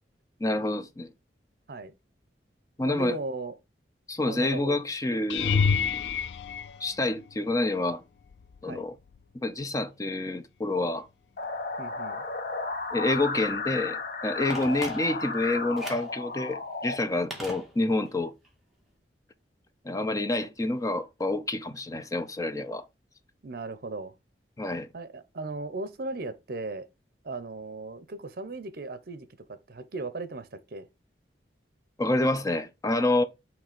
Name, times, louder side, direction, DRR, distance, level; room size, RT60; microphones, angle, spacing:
voice 1, 0.4-1.1 2.8-3.2 4.1-6.2 6.8-8.0 8.6-8.9 9.4-11.1 12.9-18.3 19.8-22.8 24.6-24.9 32.0-33.2, left 2 dB, 20° left, 0.5 m, -28 dB
voice 2, 2.8-3.5 4.2-4.8 8.6-8.9 11.8-12.2 23.4-24.1 24.9-26.9 27.2-30.9, right 3 dB, 60° right, 0.7 m, -37 dB
sound 1, 5.3-7.6 8.3-8.7 9.1-9.2 13.6-13.7, left 6 dB, 80° left, 0.4 m, -28 dB
sound 2, 11.4-17.0, left 3 dB, 55° left, 1.0 m, -33 dB
Telephone, 14.5-15.4 15.8-16.2 17.3-18.2 18.4-18.5, equal, ahead, 1.7 m, -40 dB
6.3 x 3.2 x 5.0 m
head